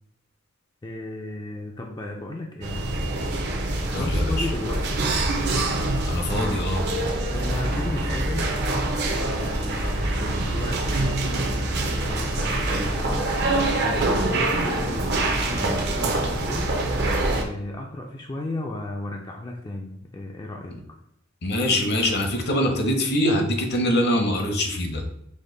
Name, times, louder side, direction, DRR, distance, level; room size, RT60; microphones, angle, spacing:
voice 1, 0.8-3.0 3.9-5.0 7.3-8.5 9.0-13.3 13.8-16.7 17.3-20.8, left 2 dB, 20° left, 1 dB, 0.3 m, -34 dB
sound 1, 2.6-17.4, right 2 dB, 55° right, 0.6 m, -25 dB
voice 2, 3.9-4.5 6.1-6.9 21.4-25.0, left 1 dB, 55° left, 4 dB, 0.7 m, -23 dB
5.1 x 2.2 x 3.8 m, 0.76 s
head